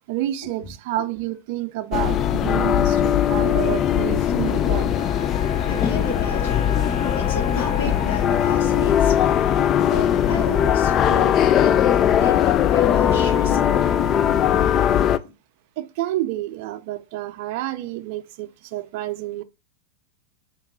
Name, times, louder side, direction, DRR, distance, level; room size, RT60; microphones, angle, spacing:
voice 1, 0.1-4.9 15.8-19.4, right 14 dB, 60° right, 0.4 m, -29 dB
sound 1, 1.9-15.2, left 10 dB, 35° left, 0.4 m, -20 dB
Wind instrument woodwind instrument, 4.4-9.0, left 4 dB, 80° left, 1.7 m, -34 dB
voice 2, 5.3-9.4 9.8-13.9, left 3 dB, 65° left, 3.0 m, -34 dB
4.6 x 3.6 x 3.0 m
hypercardioid pair, 105°, 0 cm